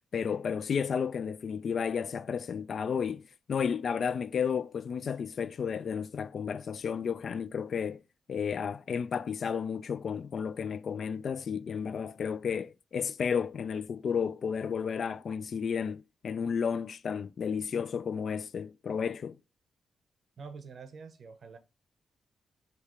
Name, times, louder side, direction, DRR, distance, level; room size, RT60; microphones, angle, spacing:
voice 1, 0.1-3.2 3.5-8.0 8.3-19.4, left 6 dB, 60° left, 0.3 m, -32 dB
voice 2, 20.4-21.6, right 5 dB, 60° right, 0.7 m, -46 dB
3.4 x 2.8 x 4.4 m
cardioid pair, 105°, 0 cm